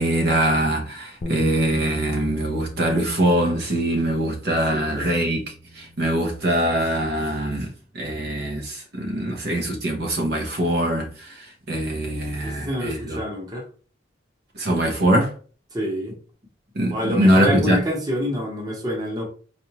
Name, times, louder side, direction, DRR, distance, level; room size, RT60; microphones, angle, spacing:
voice 1, 0.0-5.4 5.7-7.7 7.9-13.2 14.6-15.3 16.8-17.8, right 1 dB, 55° right, 0.8 m, -22 dB
sound 1, 1.2-7.5, left 1 dB, 35° left, 0.4 m, -39 dB
voice 2, 4.7-5.1 12.4-13.7 15.7-16.2 16.9-19.2, equal, 20° right, 1.0 m, -27 dB
4.6 x 2.6 x 2.9 m
head